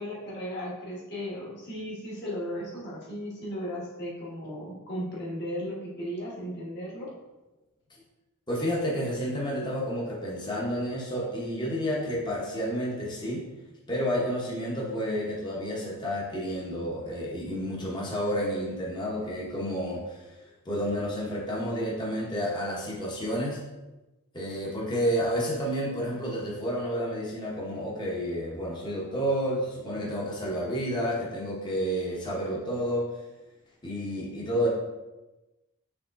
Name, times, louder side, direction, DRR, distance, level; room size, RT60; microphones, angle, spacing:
voice 1, 0.0-7.1, equal, 50° left, -5 dB, 1.5 m, -36 dB
voice 2, 8.5-13.4 13.9-20.2 20.6-23.6 24.3-33.1 33.8-34.7, equal, 20° left, -5 dB, 0.9 m, -30 dB
5.8 x 3.6 x 2.6 m, 1.1 s
head